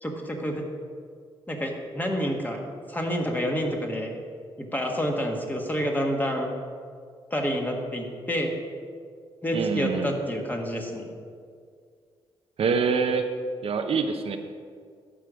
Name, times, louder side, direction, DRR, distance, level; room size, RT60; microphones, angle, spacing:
voice 1, 0.0-0.7 1.5-2.6 2.9-4.1 4.6-6.5 7.3-8.5 9.4-11.1, equal, 15° left, 1 dB, 1.5 m, -28 dB
voice 2, 9.5-10.1 12.6-13.3 13.6-14.4, right 5 dB, 65° right, 6 dB, 0.7 m, -25 dB
13.5 x 4.9 x 5.1 m, 2.1 s
cardioid pair, 80°, 11 cm